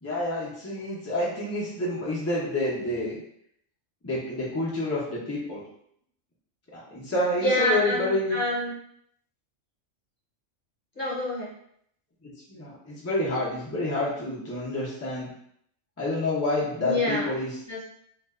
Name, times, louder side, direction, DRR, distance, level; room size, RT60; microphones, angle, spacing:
voice 1, 0.0-3.2 4.0-5.6 6.7-8.4 12.2-15.3 16.0-17.5, left 1 dB, 20° left, -7 dB, 0.4 m, -28 dB
voice 2, 7.4-8.7 11.0-11.5 16.8-17.3 17.7-17.8, left 1 dB, 50° left, -6 dB, 0.9 m, -27 dB
2.5 x 2.2 x 2.3 m, 0.69 s
omnidirectional pair, 1.3 m